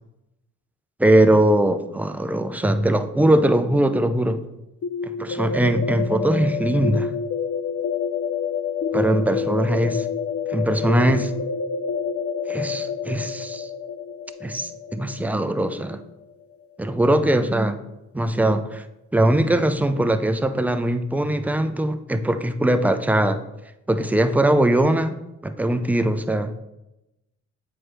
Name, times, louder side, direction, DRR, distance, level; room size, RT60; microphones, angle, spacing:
voice 1, 1.0-4.4 5.2-7.1 8.9-10.0 10.5-11.3 12.5-13.7 14.4-16.0 16.8-17.8 18.1-18.8 19.1-23.4 23.9-26.5, right 1 dB, 5° right, 9 dB, 0.4 m, -21 dB
sound 1, 4.8-16.5, left 6 dB, 50° left, 0.5 m, -28 dB
7.8 x 4.4 x 3.2 m, 0.92 s
cardioid pair, 90°, 30 cm